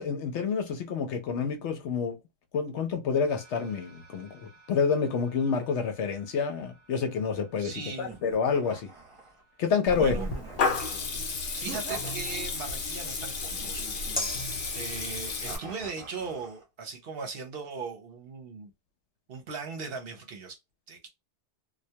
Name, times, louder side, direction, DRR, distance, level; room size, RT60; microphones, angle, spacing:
voice 1, 0.0-2.2 2.5-4.3 4.7-8.9 9.6-10.2, left 6 dB, 80° left, 0.9 m, -28 dB
sound 1, 3.3-12.7 14.1-16.2, left 1 dB, 15° left, 0.4 m, -46 dB
voice 2, 7.6-8.2 9.9-10.3 11.5-13.9 14.7-18.7 19.3-20.6 20.9-21.1, right 5 dB, 60° right, 0.8 m, -39 dB
sound 2, 8.0-9.4 10.0-11.0 11.6-12.8 13.5-14.6 15.5-16.6, right 4 dB, 30° right, 0.8 m, -43 dB
Water tap faucet / Liquid, 9.9-15.6, left 4 dB, 55° left, 0.7 m, -32 dB
2.2 x 2.2 x 2.7 m
omnidirectional pair, 1.2 m